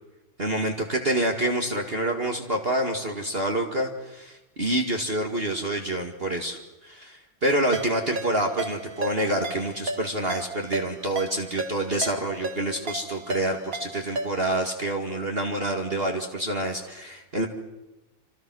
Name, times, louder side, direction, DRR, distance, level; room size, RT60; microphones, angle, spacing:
voice 1, 0.4-17.5, right 1 dB, 30° right, 2 dB, 2.0 m, -27 dB
Ringtone, 7.7-14.6, right 3 dB, 45° right, 2.5 m, -35 dB
27.5 x 26.5 x 6.2 m, 1.0 s
omnidirectional pair, 2.1 m